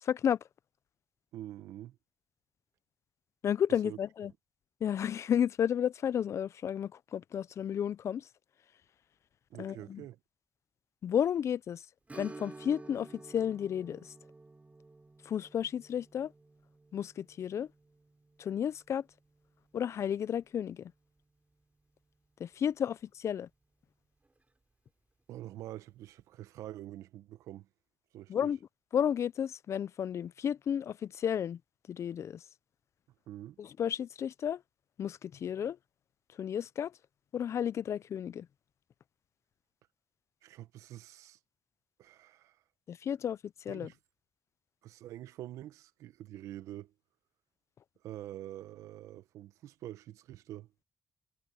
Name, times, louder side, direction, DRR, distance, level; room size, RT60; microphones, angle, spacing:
voice 1, 0.0-0.4 3.4-4.3 4.8-8.3 9.6-10.0 11.0-11.8 12.1-14.1 15.2-16.3 16.9-17.7 18.4-19.0 19.7-20.9 22.4-23.5 28.3-28.6 28.9-31.6 31.9-32.4 33.6-34.6 35.0-35.8 36.4-36.9 37.3-38.5 42.9-43.9, left 9 dB, 65° left, 0.6 m, -32 dB
voice 2, 1.3-2.0 3.8-4.0 9.5-10.2 25.3-27.7 28.1-28.5 33.3-33.6 40.4-41.4 42.0-42.6 43.7-44.0 44.8-46.9 48.0-50.7, right 13 dB, 85° right, 1.2 m, -46 dB
Strum, 12.1-21.3 21.6-21.7 24.2-24.4 24.9-25.0, right 3 dB, 25° right, 3.5 m, -53 dB
supercardioid pair, 50°, 5 cm